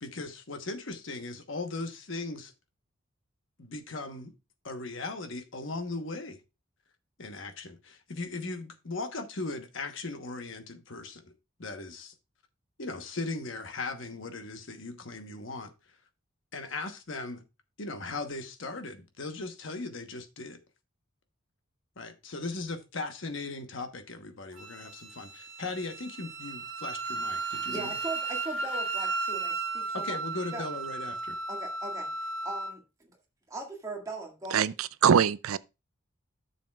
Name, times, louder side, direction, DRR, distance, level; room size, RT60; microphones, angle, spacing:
voice 1, 0.0-2.5 3.6-4.3 4.6-6.4 7.2-11.3 11.6-12.1 12.8-15.7 16.5-17.4 17.8-20.6 22.0-28.0 29.9-31.4, left 3 dB, 60° left, 1.1 m, -38 dB
Wind instrument woodwind instrument, 24.6-32.7, right 3 dB, 60° right, 1.1 m, -35 dB
voice 2, 27.7-30.2 30.5-30.6 31.5-32.1 32.4-32.8 33.5-34.6, right 2 dB, 15° right, 1.9 m, -39 dB
voice 3, 34.5-35.6, right 7 dB, 75° right, 0.4 m, -23 dB
10.5 x 6.9 x 2.3 m
head